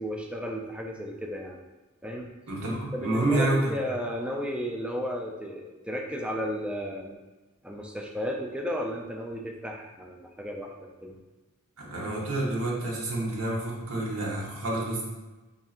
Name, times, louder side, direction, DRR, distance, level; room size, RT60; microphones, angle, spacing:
voice 1, 0.0-1.6 2.0-2.3 2.9-7.2 7.6-11.2, equal, 5° right, 1 dB, 0.3 m, -34 dB
voice 2, 2.5-3.7 11.8-15.0, right 2 dB, 65° right, -3 dB, 0.9 m, -28 dB
5.3 x 2.6 x 2.4 m, 1.2 s
head